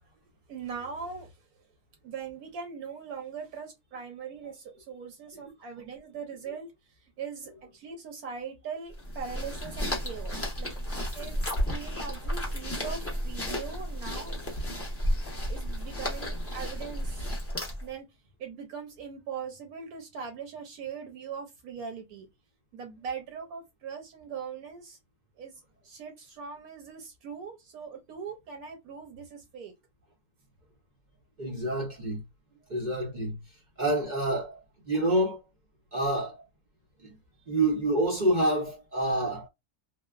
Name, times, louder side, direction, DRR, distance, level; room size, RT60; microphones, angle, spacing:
voice 1, 0.5-1.5 2.0-10.7 11.1-11.4 11.7-14.4 15.5-17.3 17.8-18.1 18.4-22.3 22.7-25.0 25.4-25.5 25.8-29.7 32.6-32.7, right 6 dB, 75° right, 1.1 m, -41 dB
sound 1, 8.9-17.9, equal, 20° left, 0.3 m, -33 dB
voice 2, 31.4-32.2 32.7-33.4 33.8-34.6 34.9-35.4 35.9-36.4 37.0-37.1 37.5-39.5, right 1 dB, 55° right, 0.5 m, -27 dB
3.1 x 2.0 x 2.3 m
omnidirectional pair, 1.7 m